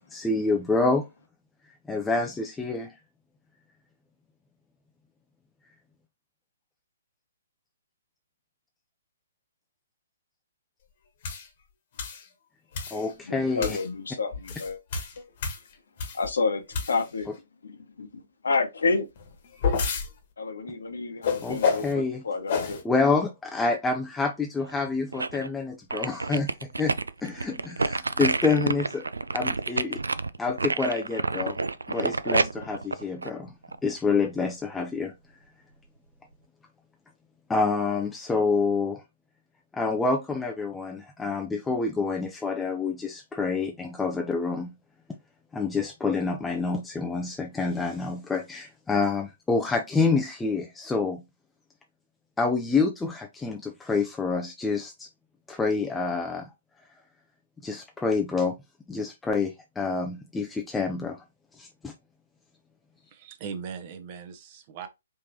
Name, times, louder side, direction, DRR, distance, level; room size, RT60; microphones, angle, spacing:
voice 1, 0.1-1.1 1.9-2.9 12.9-13.8 21.4-22.2 22.8-26.9 27.2-29.0 29.3-30.0 30.4-31.6 31.9-33.5 33.8-35.1 37.5-39.0 39.7-44.7 45.5-51.2 52.4-55.1 55.5-56.5 57.6-58.6 58.9-61.2 61.6-61.9, left 4 dB, 5° left, 0.4 m, -27 dB
sound 1, 11.2-11.5 12.0-12.2 12.7-13.1 13.6-13.9 14.3-16.3 16.7-17.2 19.2-20.1 21.2-21.9 22.5-22.8, left 5 dB, 45° left, 1.3 m, -29 dB
voice 2, 13.3-14.8 15.2-15.3 16.1-17.3 17.6-19.1 20.4-22.8, left 4 dB, 65° left, 1.0 m, -29 dB
sound 2, 24.6-25.5 25.9-34.0 34.4-34.5, right 3 dB, 75° right, 0.3 m, -29 dB
voice 3, 63.1-64.9, right 6 dB, 35° right, 0.8 m, -39 dB
4.8 x 3.0 x 2.8 m
figure-of-eight pair, 125°, 0 cm